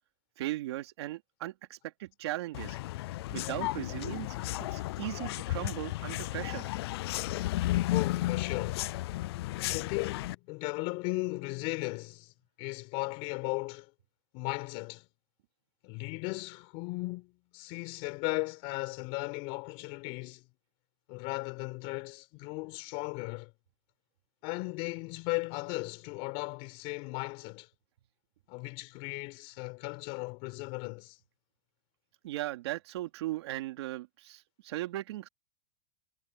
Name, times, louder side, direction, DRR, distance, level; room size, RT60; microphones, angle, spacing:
voice 1, 0.4-2.8 3.3-4.4 4.7-6.7 32.2-35.3, right 16 dB, 75° right, 3.0 m, -37 dB
sound 1, 2.5-10.4, left 17 dB, 65° left, 0.5 m, -33 dB
voice 2, 7.9-8.9 9.7-12.3 12.6-13.9 14.3-15.1 15.8-20.5 21.1-23.5 24.4-27.7 28.5-31.2, left 26 dB, 45° left, 4.6 m, -36 dB
supercardioid pair, 165°, 14 cm